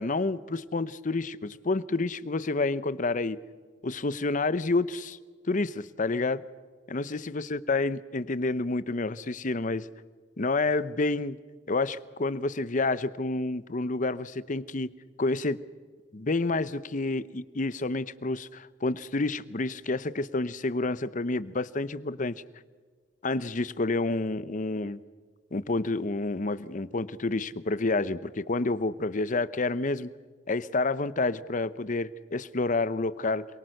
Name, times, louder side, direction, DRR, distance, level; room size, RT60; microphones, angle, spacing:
voice 1, 0.0-3.4 3.8-5.2 5.5-6.4 6.9-9.9 10.4-11.4 11.7-15.6 16.1-22.4 23.2-25.0 25.5-30.1 30.5-33.5, left 3 dB, 40° left, 16 dB, 0.8 m, -29 dB
27.5 x 23.0 x 6.6 m, 1.5 s
head